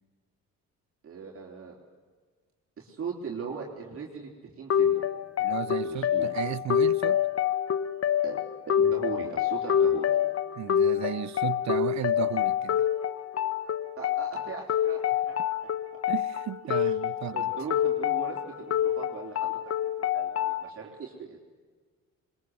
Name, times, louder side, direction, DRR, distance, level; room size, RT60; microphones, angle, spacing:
voice 1, 1.0-1.8 2.8-5.0 5.8-6.3 8.2-10.1 14.0-15.0 15.3-15.4 16.7-16.9 17.3-19.6 20.0-21.4, right 5 dB, 45° right, 3.8 m, -39 dB
sound 1, 4.7-20.7, left 9 dB, 50° left, 1.2 m, -27 dB
voice 2, 5.4-7.2 10.5-12.8 16.1-17.5, right 13 dB, 65° right, 0.8 m, -34 dB
22.0 x 22.0 x 8.0 m
cardioid pair, 90°, 30 cm